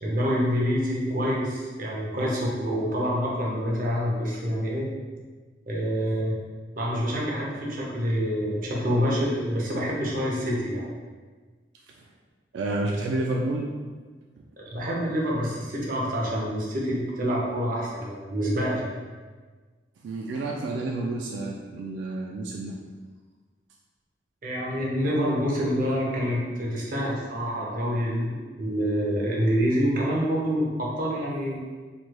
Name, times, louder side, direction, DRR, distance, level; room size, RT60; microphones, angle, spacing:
voice 1, 0.0-4.9 5.7-6.3 6.8-10.9 14.7-18.9 24.4-31.6, equal, 50° right, -3 dB, 0.7 m, -27 dB
voice 2, 12.5-13.7 20.0-22.7, right 2 dB, 85° right, -1 dB, 0.3 m, -29 dB
3.1 x 3.0 x 2.2 m, 1.4 s
head